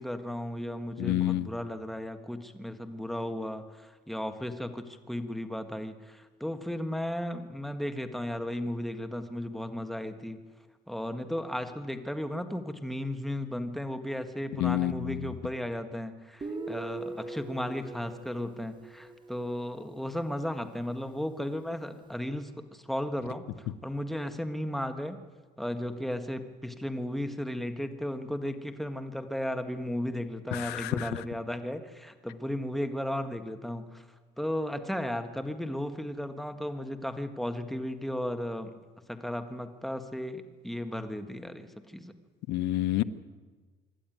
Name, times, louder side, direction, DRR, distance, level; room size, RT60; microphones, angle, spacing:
voice 1, 0.0-10.4 10.9-25.2 25.6-34.0 34.4-38.7 39.1-42.1, left 1 dB, ahead, 7 dB, 1.7 m, -35 dB
voice 2, 1.0-1.5 14.6-15.2 30.5-31.1 42.5-43.0, left 14 dB, 90° left, 13 dB, 0.9 m, -28 dB
Guitar, 16.4-19.9, right 3 dB, 30° right, 2.3 m, -41 dB
26.0 x 12.0 x 9.3 m, 1.4 s
cardioid pair, 110°, 17 cm